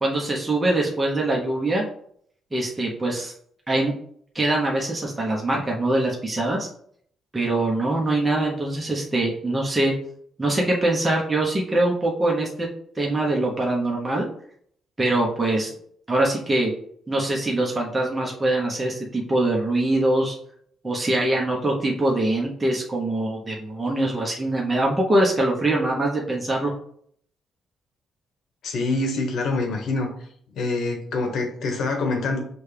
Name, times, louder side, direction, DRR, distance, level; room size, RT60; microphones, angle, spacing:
voice 1, 0.0-1.8 2.5-3.3 3.7-3.9 4.3-6.7 7.3-9.9 10.4-12.7 13.0-14.3 15.0-15.7 16.1-16.7 17.1-20.4 20.8-26.7, right 1 dB, 15° right, -2 dB, 0.9 m, -23 dB
voice 2, 28.6-30.1 30.5-32.4, left 3 dB, 70° left, 3 dB, 1.1 m, -25 dB
6.1 x 2.3 x 3.4 m, 0.64 s
cardioid pair, 115°, 0 cm